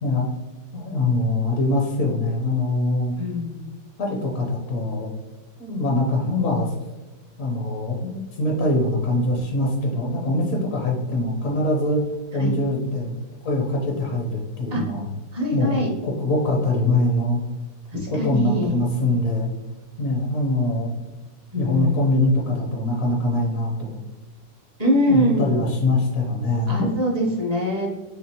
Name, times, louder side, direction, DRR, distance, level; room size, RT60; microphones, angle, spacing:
voice 1, 0.7-3.1 4.0-5.1 5.6-6.7 7.4-12.0 12.3-13.1 13.4-15.1 15.5-17.4 18.1-19.5 20.0-20.9 21.6-24.0 25.0-26.8, left 2 dB, 65° left, -1 dB, 0.8 m, -23 dB
voice 2, 3.2-3.8 12.4-12.5 14.7-14.8 15.3-15.9 17.9-18.7 21.5-22.0 24.8-25.5 26.7-27.9, equal, 45° right, -3 dB, 0.5 m, -23 dB
4.3 x 3.4 x 2.8 m, 1.2 s
omnidirectional pair, 2.1 m